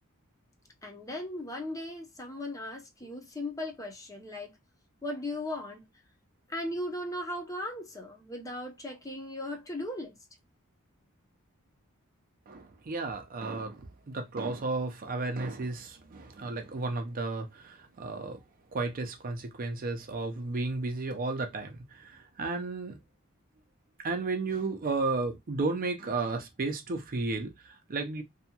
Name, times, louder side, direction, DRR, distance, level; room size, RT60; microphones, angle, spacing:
voice 1, 0.8-4.5 5.0-5.9 6.5-10.2, left 1 dB, 15° left, 0.5 m, -37 dB
voice 2, 12.5-18.4 18.7-23.0 24.0-28.2, right 3 dB, 40° right, 0.5 m, -33 dB
2.7 x 2.2 x 2.7 m
head